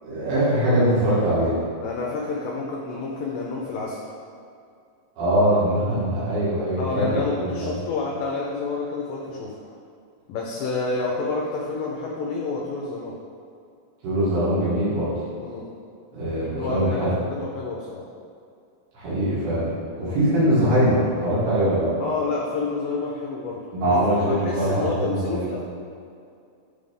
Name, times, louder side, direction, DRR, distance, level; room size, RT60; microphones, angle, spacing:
voice 1, 0.0-1.5 5.2-7.7 14.0-15.1 16.1-17.2 18.9-19.7 20.0-21.9 23.7-25.5, right 1 dB, 90° right, -11 dB, 3.8 m, -22 dB
voice 2, 1.8-4.0 6.8-9.6 10.3-13.2 15.4-15.7 16.4-18.1 20.0-20.2 22.0-24.0 24.3-25.6, left 3 dB, 75° left, -3 dB, 2.2 m, -29 dB
10.0 x 3.5 x 5.4 m, 2.4 s
omnidirectional pair, 4.2 m